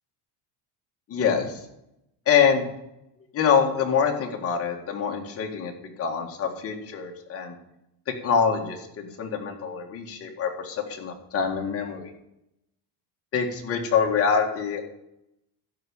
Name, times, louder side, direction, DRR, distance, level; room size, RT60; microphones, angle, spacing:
voice 1, 1.1-1.6 2.3-2.7 3.3-5.7 6.0-7.5 8.2-12.1 13.3-14.9, left 6 dB, 30° left, 2 dB, 1.9 m, -25 dB
12.5 x 5.1 x 8.6 m, 0.85 s
cardioid pair, 165°, 44 cm